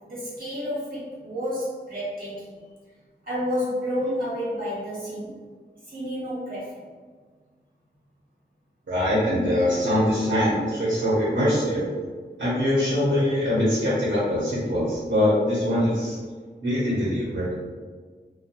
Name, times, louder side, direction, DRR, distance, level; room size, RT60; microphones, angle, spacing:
voice 1, 0.0-2.5 3.2-5.4 5.9-6.8, equal, 50° right, -8 dB, 1.2 m, -30 dB
voice 2, 8.9-11.9 12.4-16.2 16.6-17.5, left 1 dB, 80° right, -10 dB, 0.8 m, -23 dB
2.7 x 2.1 x 2.5 m, 1.5 s
wide cardioid pair, 65°, 19 cm